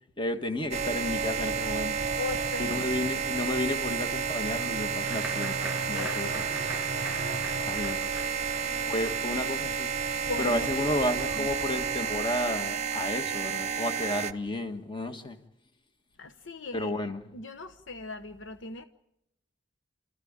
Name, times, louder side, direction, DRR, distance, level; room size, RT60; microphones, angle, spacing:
voice 1, 0.2-2.0 2.6-6.4 7.6-8.2 8.7-9.9 10.4-15.4 16.7-17.2, left 1 dB, 25° left, 1.7 m, -32 dB
sound 1, 0.7-14.3, right 6 dB, 40° right, 0.9 m, -31 dB
voice 2, 2.2-3.0 5.9-6.6 7.1-7.9 10.2-10.9 11.1-11.5 16.2-18.8, left 3 dB, 85° left, 0.9 m, -40 dB
sound 2, 4.0-9.2, left 1 dB, 45° left, 2.5 m, -53 dB
Applause, 5.0-12.1 12.3-13.1 13.5-13.6 13.9-14.3, right 2 dB, 5° right, 2.8 m, -43 dB
28.5 x 14.5 x 8.9 m
head